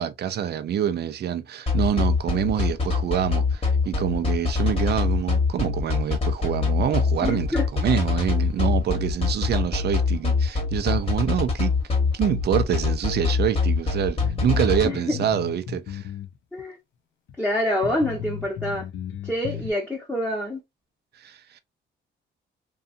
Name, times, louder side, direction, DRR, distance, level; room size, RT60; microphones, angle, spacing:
voice 1, 0.0-11.8 12.1-16.1 21.2-21.6, right 9 dB, 55° right, 0.5 m, -26 dB
sound 1, 1.7-14.9, left 4 dB, 30° left, 1.1 m, -23 dB
voice 2, 7.2-7.7 14.8-15.2 16.5-16.8 17.4-18.9 19.2-20.6, left 1 dB, 5° left, 0.9 m, -26 dB
sound 2, 14.2-16.3 16.6-16.7 17.3-17.4 17.8-19.7, left 9 dB, 75° left, 0.5 m, -35 dB
2.6 x 2.2 x 2.5 m
cardioid pair, 90°, 20 cm